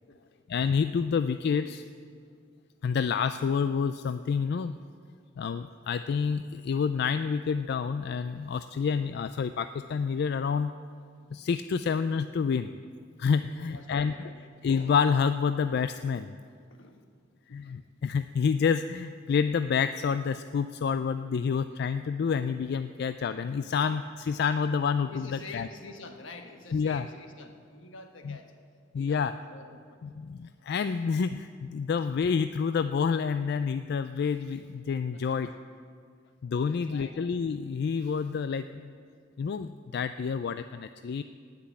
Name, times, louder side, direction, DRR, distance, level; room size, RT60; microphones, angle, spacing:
voice 1, 0.5-1.8 2.8-4.8 5.4-10.7 11.3-12.7 13.2-14.3 14.6-16.4 17.5-25.7 26.7-27.1 28.2-28.4 28.9-29.3 30.0-35.5 36.4-38.9 39.4-41.2, left 6 dB, 55° left, 11 dB, 0.3 m, -28 dB
voice 2, 13.5-14.4 16.7-17.0 17.5-17.7 25.1-28.5 28.9-29.8 31.7-31.9 35.1-35.5 36.7-37.2, left 3 dB, 80° left, 5 dB, 1.4 m, -47 dB
18.0 x 6.0 x 8.6 m, 2.1 s
head